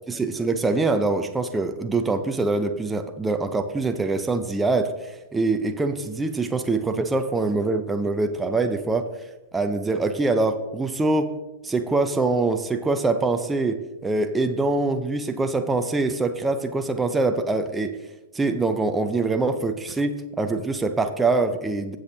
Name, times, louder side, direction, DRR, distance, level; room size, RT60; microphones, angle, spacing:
voice 1, 0.1-9.1 9.5-11.3 11.6-18.0 18.3-22.0, right 3 dB, 10° right, 6 dB, 0.6 m, -24 dB
16.5 x 6.4 x 2.8 m, 1.1 s
figure-of-eight pair, 100°, 0 cm